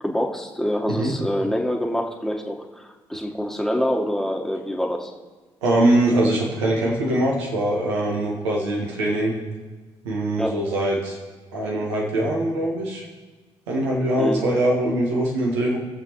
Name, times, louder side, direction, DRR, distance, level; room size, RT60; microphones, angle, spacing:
voice 1, 0.0-5.1 10.4-10.5 14.2-14.5, equal, 5° left, 1 dB, 1.5 m, -25 dB
voice 2, 5.6-9.3 10.0-11.2 11.5-13.0 13.7-15.8, right 1 dB, 85° right, -2 dB, 1.6 m, -22 dB
20.5 x 7.3 x 3.1 m, 1.3 s
hypercardioid pair, 40°, 14 cm